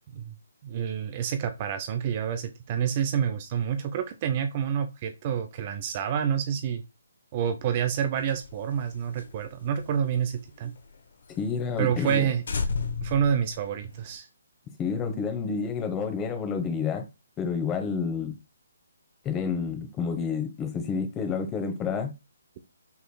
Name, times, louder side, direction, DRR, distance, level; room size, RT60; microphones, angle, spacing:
voice 1, 0.6-6.8 7.3-10.7 11.8-12.4 13.0-14.3, right 8 dB, 35° right, 0.5 m, -28 dB
sound 1, 8.1-11.0 11.3-11.4 11.7-11.8 12.1-12.2 12.5-14.2, left 4 dB, 60° left, 0.9 m, -34 dB
voice 2, 11.4-12.3 14.8-17.1 17.4-18.4 19.2-22.1, left 5 dB, 20° left, 1.1 m, -29 dB
5.7 x 3.7 x 2.3 m
figure-of-eight pair, 145°, 0 cm